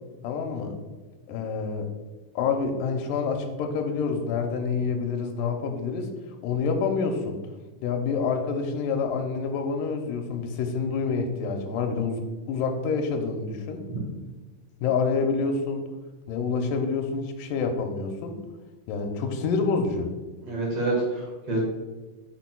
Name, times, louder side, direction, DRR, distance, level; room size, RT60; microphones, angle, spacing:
voice 1, 0.2-0.8 1.3-1.9 2.4-6.1 6.4-7.4 7.8-13.8 14.8-15.9 16.3-18.4 18.9-20.1, left 5 dB, 85° left, 4 dB, 2.3 m, -27 dB
voice 2, 20.4-21.6, right 2 dB, 55° right, -3 dB, 2.4 m, -27 dB
8.3 x 6.3 x 2.3 m, 1.2 s
omnidirectional pair, 3.8 m